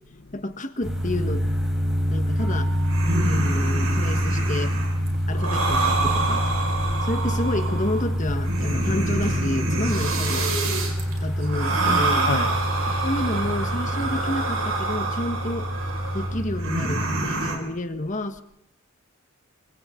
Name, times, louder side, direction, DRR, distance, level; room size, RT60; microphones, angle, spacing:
voice 1, 0.3-1.5 2.1-2.7 3.1-4.8 5.3-6.4 7.0-10.6 11.2-12.3 13.0-15.7 16.1-18.4, left 1 dB, 35° left, 1.5 m, -30 dB
sound 1, 0.8-14.3, right 1 dB, ahead, 4.6 m, -42 dB
sound 2, 0.8-17.3, equal, 30° right, 3.3 m, -26 dB
voice 2, 1.7-2.2 5.1-5.2 6.7-7.1 11.0-11.3 12.2-13.0, left 3 dB, 50° left, 0.9 m, -35 dB
sound 3, 2.7-17.6, right 3 dB, 75° right, 5.6 m, -27 dB
26.0 x 25.5 x 3.8 m
head